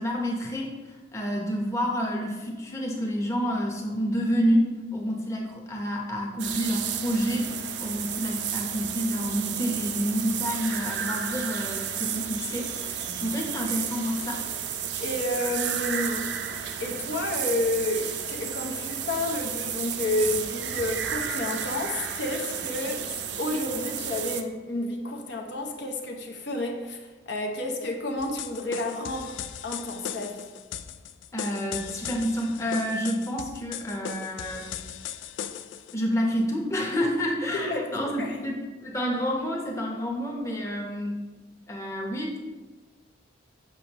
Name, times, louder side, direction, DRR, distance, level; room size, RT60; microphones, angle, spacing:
voice 1, 0.0-14.6 31.3-35.0 35.9-41.2 41.7-42.4, equal, 15° left, -1 dB, 0.8 m, -29 dB
sound 1, 6.4-24.4, right 8 dB, 70° right, 0.5 m, -32 dB
voice 2, 15.0-16.3 16.8-30.5 37.5-38.6, left 1 dB, 65° left, 2 dB, 0.8 m, -30 dB
sound 2, 28.2-36.0, left 9 dB, 85° left, 0.3 m, -38 dB
7.0 x 6.0 x 2.9 m, 1.3 s
head